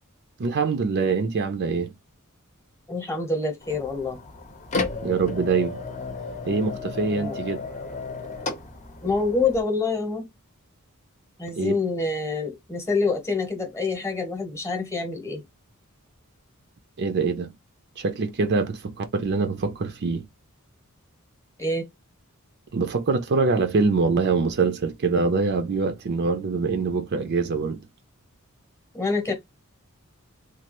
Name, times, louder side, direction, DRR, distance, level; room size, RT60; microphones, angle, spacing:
voice 1, 0.4-2.0 5.0-5.8 6.5-7.6 11.6-11.8 17.0-17.5 18.0-20.3 22.7-27.8, right 4 dB, 50° right, 0.5 m, -24 dB
voice 2, 2.9-4.2 7.1-7.4 9.0-10.3 11.4-15.4 21.6-21.8 28.9-29.3, left 3 dB, 15° left, 0.9 m, -26 dB
sound 1, 3.6-9.6, left 3 dB, 35° left, 0.7 m, -33 dB
3.2 x 2.3 x 2.9 m
head